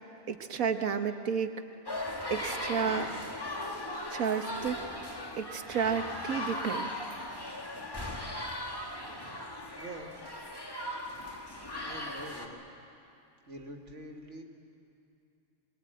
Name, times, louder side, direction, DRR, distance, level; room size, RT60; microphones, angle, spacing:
voice 1, 0.3-1.6 2.3-3.1 4.1-4.8 5.4-6.9, right 7 dB, 85° right, 7 dB, 1.6 m, -31 dB
sound 1, 1.9-12.5, left 1 dB, 15° left, 1.8 m, -38 dB
voice 2, 9.8-10.1 11.8-12.7 13.5-14.4, right 1 dB, 60° right, 2 dB, 2.4 m, -45 dB
24.0 x 22.0 x 9.2 m, 2.7 s
omnidirectional pair, 1.4 m